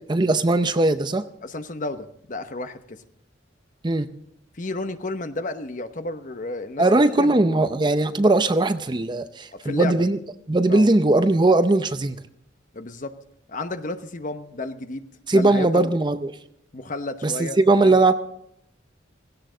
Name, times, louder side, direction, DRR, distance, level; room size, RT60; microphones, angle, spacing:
voice 1, 0.1-1.2 3.8-4.1 6.8-10.2 10.5-12.2 15.3-16.3 17.2-18.1, right 2 dB, 25° right, 10 dB, 0.6 m, -19 dB
voice 2, 1.4-3.0 4.5-6.9 7.2-7.6 9.5-10.0 10.7-10.9 12.7-13.1 13.5-15.1 15.3-15.9 16.7-17.9, left 2 dB, 40° left, 9 dB, 0.9 m, -32 dB
16.5 x 16.0 x 3.9 m, 0.75 s
head